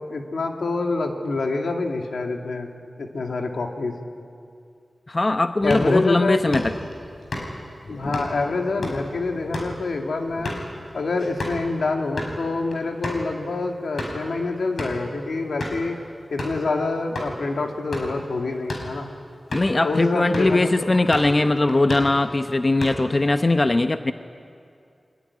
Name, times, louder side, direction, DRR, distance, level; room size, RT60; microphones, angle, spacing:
voice 1, 0.1-2.7 3.0-3.9 5.6-6.6 7.9-10.6 10.9-16.0 16.3-19.1 19.8-20.9, left 3 dB, 90° left, 2 dB, 2.3 m, -26 dB
voice 2, 5.1-6.7 19.5-24.1, left 2 dB, 40° left, 8 dB, 0.8 m, -20 dB
sound 1, 5.6-11.7 12.0-12.3 12.7-12.8 13.0-13.2 13.7-14.3 14.8-15.1 15.6-15.9 16.4-16.6 17.1-17.3 17.8-18.2 18.6-18.9 19.5-19.8 20.3-20.6 20.9-21.4 21.7-22.2 22.6-23.2, left 1 dB, 75° left, 5.6 m, -32 dB
23.5 x 21.5 x 9.8 m, 2.4 s
wide cardioid pair, 60°, 0 cm